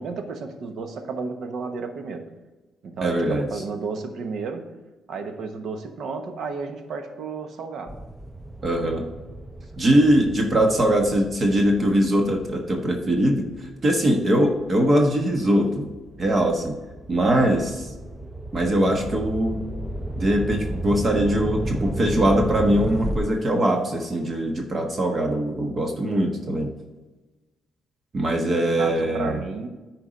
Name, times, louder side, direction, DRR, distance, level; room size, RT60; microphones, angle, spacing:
voice 1, 0.0-2.3 2.8-4.7 5.1-8.0 28.3-29.7, right 4 dB, 65° right, 6 dB, 1.1 m, -32 dB
voice 2, 3.0-3.5 8.6-9.1 9.8-15.9 16.2-16.8 17.1-17.9 18.5-19.6 20.1-26.7 28.1-29.4, right 1 dB, 40° right, 2 dB, 1.3 m, -21 dB
sound 1, 7.9-14.6 15.2-23.2, right 1 dB, 10° right, 0.5 m, -33 dB
9.6 x 4.5 x 5.1 m, 1.1 s
cardioid pair, 90°, 0 cm